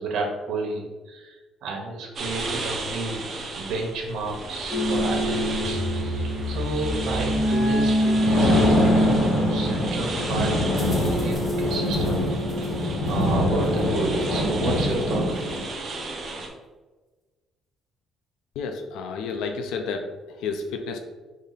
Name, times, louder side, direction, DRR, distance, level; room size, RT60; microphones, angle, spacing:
voice 1, 0.0-3.3 3.6-12.2 13.1-15.4, right 2 dB, 65° right, 1 dB, 1.0 m, -31 dB
sound 1, 2.2-16.5, right 3 dB, 35° right, 0.7 m, -35 dB
sound 2, 4.7-13.8, equal, 10° left, 0.7 m, -26 dB
Thunder, 7.9-15.6, left 1 dB, 65° left, 1.4 m, -24 dB
voice 2, 18.6-21.0, left 4 dB, 85° left, 5 dB, 0.4 m, -31 dB
5.2 x 2.4 x 4.0 m, 1.3 s
cardioid pair, 165°, 0 cm